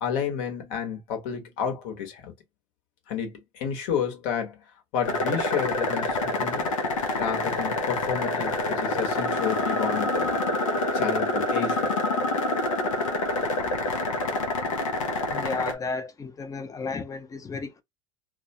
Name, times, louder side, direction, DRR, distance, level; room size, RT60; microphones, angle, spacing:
voice 1, 0.0-2.3 3.1-4.6 4.9-6.7 7.2-10.4 10.9-11.9, left 7 dB, 60° left, 1.1 m, -31 dB
sound 1, 5.0-15.7, left 2 dB, 80° left, 0.7 m, -27 dB
voice 2, 15.3-17.8, left 4 dB, 20° left, 0.6 m, -33 dB
2.3 x 2.2 x 2.8 m
hypercardioid pair, 75°, 16 cm